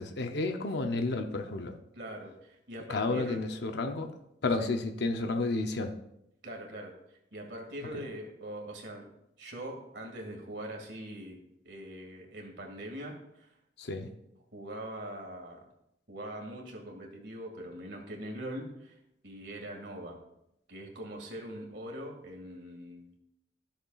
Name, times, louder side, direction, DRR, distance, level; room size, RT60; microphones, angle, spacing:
voice 1, 0.0-1.8 2.9-4.1 4.4-5.9 13.8-14.1, left 3 dB, 65° left, 5 dB, 0.7 m, -31 dB
voice 2, 1.9-3.6 4.6-4.7 6.4-6.9 7.3-9.1 9.4-11.4 11.6-13.5 14.5-15.7 16.1-19.0 19.2-20.2 20.7-23.2, right 1 dB, 70° right, 0 dB, 2.0 m, -42 dB
13.0 x 6.8 x 2.4 m, 0.80 s
head